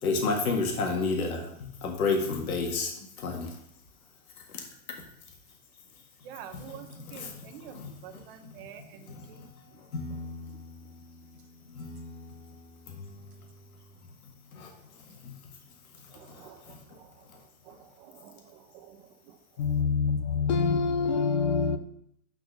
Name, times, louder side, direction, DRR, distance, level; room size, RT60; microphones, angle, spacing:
voice 1, 0.0-3.6 4.4-4.7 5.0-5.1 6.5-8.2 8.5-8.7 9.0-13.7 14.5-15.5 16.1-17.0 17.3-17.4, left 3 dB, 80° left, 1.9 m, -34 dB
voice 2, 6.2-9.8 16.1-19.4 19.8-19.9 20.3-20.4, right 9 dB, 40° right, 1.0 m, -49 dB
voice 3, 19.6-21.8, left 5 dB, 35° left, 0.4 m, -26 dB
6.5 x 4.6 x 6.6 m
hypercardioid pair, 155°, 42 cm